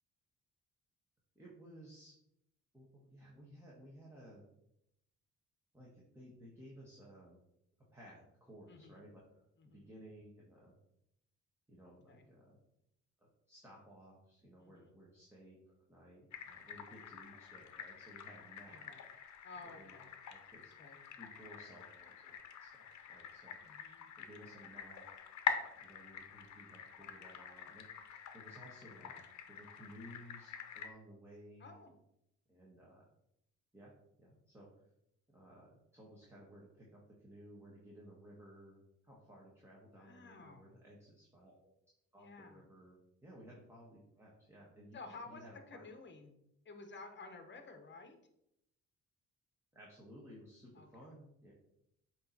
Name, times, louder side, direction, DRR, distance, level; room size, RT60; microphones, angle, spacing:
voice 1, 1.3-2.2 2.7-4.4 5.7-7.4 7.9-9.2 9.6-10.8 11.7-12.6 13.2-15.5 15.9-18.9 19.6-19.9 20.2-20.7 21.2-25.2 25.8-31.7 32.5-33.0 33.7-34.7 35.3-41.7 42.1-45.0 45.3-45.8 49.7-51.5, equal, 10° right, -4 dB, 1.6 m, -57 dB
voice 2, 8.7-9.0 9.6-9.9 12.1-12.3 14.6-14.9 18.7-19.0 19.4-20.1 20.8-21.0 23.5-24.0 31.6-31.9 39.9-40.7 42.2-42.6 44.9-46.4 46.6-48.2 50.7-50.9, left 3 dB, 40° left, 6 dB, 1.1 m, -53 dB
sound 1, 16.3-30.9, left 7 dB, 65° left, 0.8 m, -46 dB
7.7 x 3.1 x 4.0 m, 0.79 s
cardioid pair, 90°, 30 cm